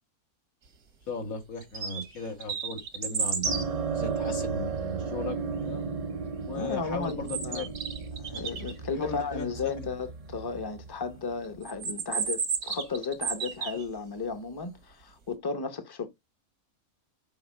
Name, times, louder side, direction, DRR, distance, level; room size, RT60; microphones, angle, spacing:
voice 1, 1.1-5.8 6.5-7.7 9.0-9.9, left 3 dB, 70° left, 2.3 m, -37 dB
sound 1, 1.6-2.1 2.4-3.7 7.0-8.7 11.6-13.8, right 6 dB, 85° right, 1.8 m, -32 dB
sound 2, 3.4-11.8, right 5 dB, 70° right, 0.3 m, -35 dB
voice 2, 6.5-7.7 8.1-16.1, left 4 dB, 20° left, 0.7 m, -34 dB
6.8 x 4.2 x 6.5 m
omnidirectional pair, 1.5 m